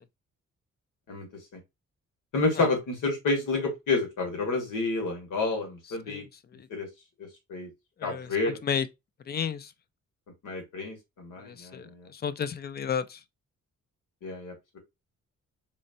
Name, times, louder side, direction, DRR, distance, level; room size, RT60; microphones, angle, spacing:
voice 1, 2.3-6.2 6.7-6.9 7.2-7.7 8.0-8.6 10.4-12.1 14.2-14.8, left 3 dB, 85° left, 1.8 m, -30 dB
voice 2, 6.1-6.7 8.0-8.9 9.3-9.7 11.4-13.2, left 7 dB, 35° left, 0.4 m, -33 dB
4.1 x 3.2 x 2.5 m
cardioid pair, 135°, 31 cm